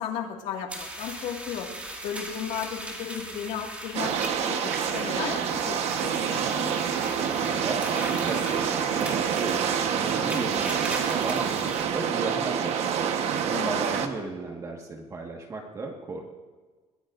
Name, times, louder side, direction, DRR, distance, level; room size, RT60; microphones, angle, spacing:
voice 1, 0.0-1.7 2.0-4.1 4.4-6.7 13.5-14.0, left 8 dB, 80° left, 1 dB, 2.1 m, -35 dB
sound 1, 0.7-11.8, right 1 dB, 10° right, 2.0 m, -39 dB
sound 2, 3.9-14.1, right 8 dB, 60° right, 1.2 m, -27 dB
sound 3, 7.3-13.4, right 3 dB, 45° right, 1.4 m, -44 dB
voice 2, 7.4-12.8 13.4-16.2, right 3 dB, 25° right, 1 dB, 1.6 m, -35 dB
22.5 x 18.5 x 2.6 m, 1.3 s
cardioid pair, 170°, 12 cm